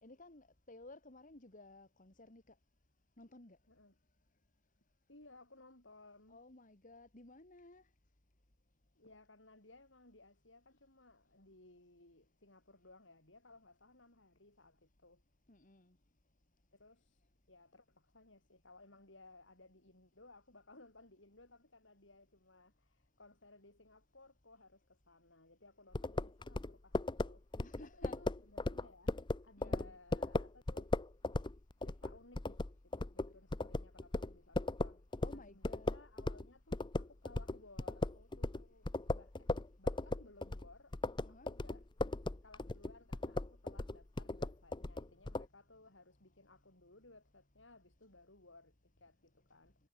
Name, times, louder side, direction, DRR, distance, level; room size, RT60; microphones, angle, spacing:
voice 1, 0.0-2.5 3.2-3.6 6.3-7.8 15.5-15.9 27.6-28.2 29.6-29.9 35.2-36.0 41.2-41.5, left 2 dB, 45° left, 2.4 m, -56 dB
voice 2, 3.7-4.0 5.1-6.4 9.0-15.2 16.7-17.2 17.5-30.9 31.8-41.0 41.3-41.9 42.4-49.8, left 2 dB, 75° left, 7.1 m, -61 dB
sound 1, 25.9-36.5 36.7-45.5, left 2 dB, 25° left, 0.7 m, -37 dB
head